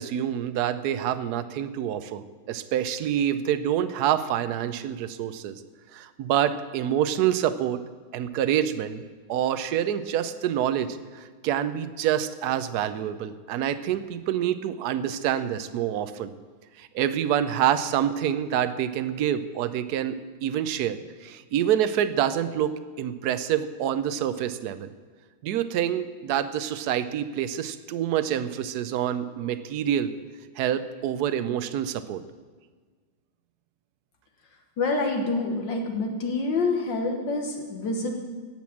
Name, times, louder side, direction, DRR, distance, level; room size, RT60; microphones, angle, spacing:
voice 1, 0.0-2.2 2.5-5.6 5.9-7.8 8.1-9.0 9.3-10.9 11.1-16.3 16.8-22.7 23.0-24.9 25.4-30.1 30.6-32.2, right 10 dB, 70° right, 12 dB, 1.0 m, -27 dB
voice 2, 34.8-38.1, left 3 dB, 65° left, 3 dB, 1.8 m, -27 dB
18.0 x 6.1 x 7.2 m, 1.5 s
omnidirectional pair, 2.2 m